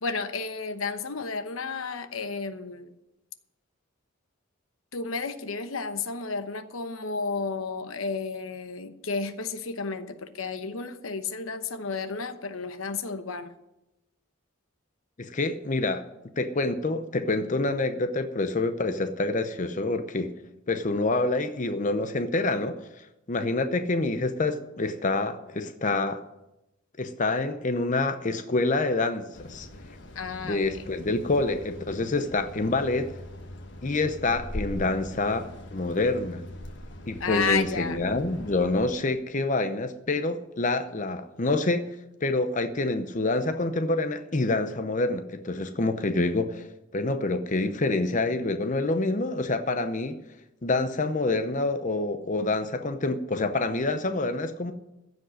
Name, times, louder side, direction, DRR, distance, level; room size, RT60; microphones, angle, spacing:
voice 1, 0.0-2.9 4.9-13.5 30.1-30.8 37.2-38.0, left 4 dB, 90° left, 9 dB, 1.0 m, -32 dB
voice 2, 15.2-16.0 16.4-20.3 20.7-22.8 23.3-26.2 27.0-29.7 30.4-33.1 33.8-36.4 37.1-41.9 42.2-50.2 50.6-54.7, left 2 dB, 40° left, 9 dB, 0.7 m, -27 dB
sound 1, 29.3-38.9, left 1 dB, 60° left, 1.4 m, -41 dB
15.5 x 5.3 x 9.7 m, 0.92 s
head